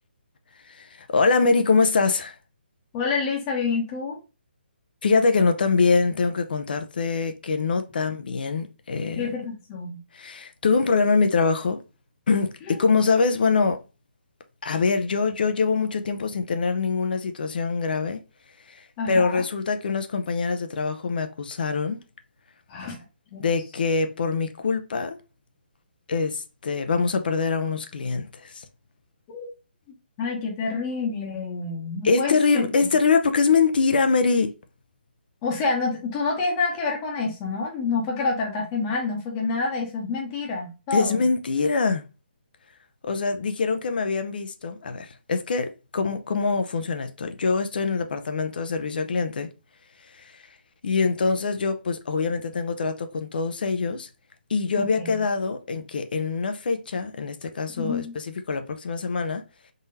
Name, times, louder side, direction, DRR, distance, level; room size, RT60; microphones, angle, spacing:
voice 1, 0.6-2.4 5.0-9.3 10.1-11.8 12.3-13.8 14.6-18.2 18.7-22.0 23.4-25.2 26.1-28.6 32.0-34.5 40.9-42.0 43.0-49.5 50.1-50.4 50.8-54.1 54.5-59.4, left 4 dB, 60° left, 0.6 m, -24 dB
voice 2, 2.9-4.2 9.1-10.0 19.0-19.4 22.7-23.0 23.3-23.5 29.3-29.5 30.2-32.6 35.4-41.2 54.8-55.1 57.8-58.1, left 4 dB, 25° left, 1.0 m, -28 dB
3.8 x 3.1 x 2.6 m
figure-of-eight pair, 145°, 6 cm